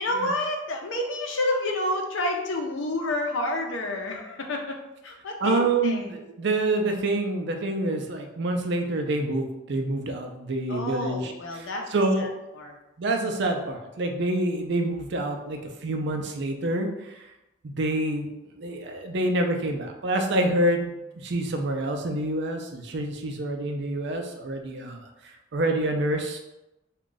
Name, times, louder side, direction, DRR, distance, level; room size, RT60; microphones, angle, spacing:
voice 1, 0.0-6.1 10.7-11.9 12.2-12.3 12.5-12.8, left 1 dB, 75° left, 2 dB, 0.7 m, -29 dB
voice 2, 5.4-12.2 13.0-17.2 17.6-18.3 18.6-25.0 25.5-26.4, right 2 dB, 65° right, 4 dB, 0.5 m, -27 dB
3.6 x 2.3 x 3.9 m, 0.95 s
head